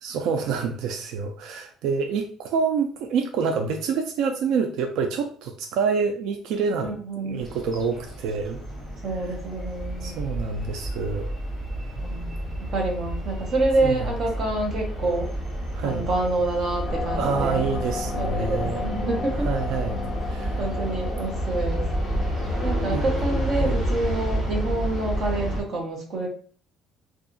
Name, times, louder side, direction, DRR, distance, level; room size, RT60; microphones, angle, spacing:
voice 1, 0.0-6.9 7.2-8.6 10.0-11.3 13.8-14.1 15.7-16.1 17.1-18.8 19.4-20.6 22.9-23.1 23.6-23.8, right 5 dB, 70° right, 5 dB, 0.3 m, -27 dB
voice 2, 6.8-7.4 9.0-10.3 12.0-15.3 15.8-17.6 18.2-19.5 20.6-21.9 22.6-26.3, right 2 dB, 45° right, 0 dB, 0.9 m, -27 dB
sound 1, 7.4-25.6, right 1 dB, 15° right, 0.9 m, -30 dB
sound 2, 16.8-22.9, left 3 dB, 45° left, 0.5 m, -33 dB
2.7 x 2.4 x 2.5 m, 0.44 s
cardioid pair, 160°, 0 cm